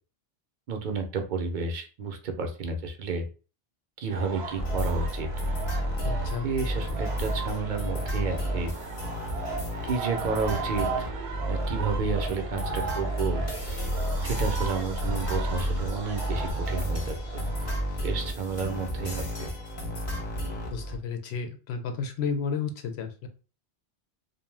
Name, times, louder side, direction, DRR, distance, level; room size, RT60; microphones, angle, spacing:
voice 1, 0.7-3.3 4.0-5.3 6.4-8.7 9.8-11.1 11.5-13.4 14.2-17.4 18.0-19.5, right 4 dB, 60° right, 5 dB, 0.6 m, -31 dB
sound 1, 4.1-17.8, right 4 dB, 80° right, 0.8 m, -37 dB
sound 2, 4.6-21.0, equal, 45° left, 0.8 m, -31 dB
voice 2, 6.0-6.5 20.7-23.3, left 5 dB, 80° left, 6 dB, 0.8 m, -32 dB
2.5 x 2.1 x 3.2 m, 0.35 s
omnidirectional pair, 1.1 m